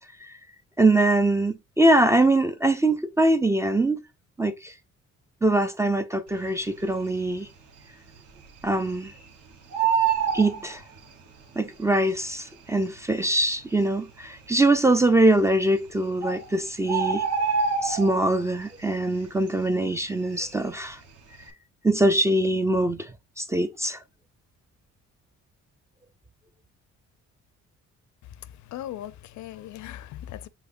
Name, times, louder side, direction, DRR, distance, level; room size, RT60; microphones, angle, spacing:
voice 1, 0.8-4.0 4.4-4.7 5.4-7.5 8.6-9.1 10.3-10.8 11.6-17.2 17.8-21.0 21.8-23.1 23.4-24.0, right 2 dB, 10° right, 0.3 m, -23 dB
Bird, 6.8-7.4 7.7-7.8 8.1-9.3 9.5-11.4 12.2-12.3 13.0-13.1 13.3-13.4 14.0-14.5 15.4-15.5 15.9-16.0 16.2-18.5 18.8-19.2 19.5-20.8 21.2-21.4, right 6 dB, 75° right, 1.2 m, -26 dB
voice 2, 28.4-30.5, left 12 dB, 70° left, 0.4 m, -39 dB
5.7 x 3.2 x 2.6 m
cardioid pair, 90°, 30 cm